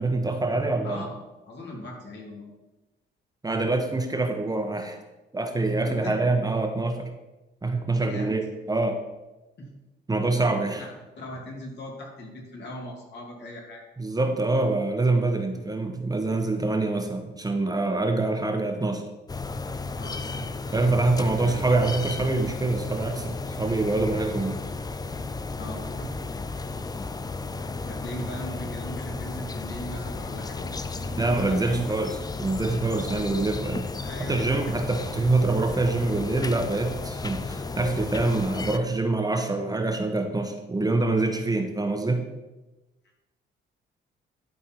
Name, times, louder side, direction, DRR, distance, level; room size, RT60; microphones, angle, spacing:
voice 1, 0.0-1.1 3.4-5.0 5.3-7.1 7.6-9.0 10.1-10.8 14.0-19.0 20.7-24.6 31.2-33.9 34.3-42.3, right 2 dB, 20° right, 4 dB, 1.0 m, -25 dB
voice 2, 0.8-2.5 5.8-6.2 7.9-8.3 9.6-9.7 10.1-10.2 10.6-10.9 11.2-13.8 20.0-20.4 21.3-21.6 25.5-26.1 27.8-31.9 32.9-33.1 34.0-34.8, left 1 dB, 60° left, -1 dB, 2.9 m, -39 dB
sound 1, 19.3-38.8, left 3 dB, 20° left, 0.5 m, -34 dB
11.5 x 4.5 x 4.8 m, 1.0 s
cardioid pair, 90°, 20 cm